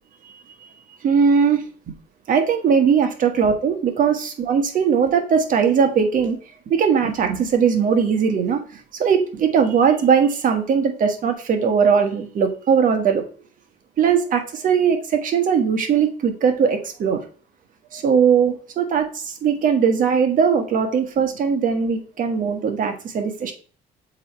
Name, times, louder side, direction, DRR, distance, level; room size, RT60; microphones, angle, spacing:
voice 1, 1.0-1.6 2.3-6.4 6.7-13.2 14.0-17.2 17.9-23.5, right 6 dB, 55° right, 6 dB, 1.4 m, -19 dB
7.3 x 3.1 x 4.4 m, 0.41 s
cardioid pair, 110°, 17 cm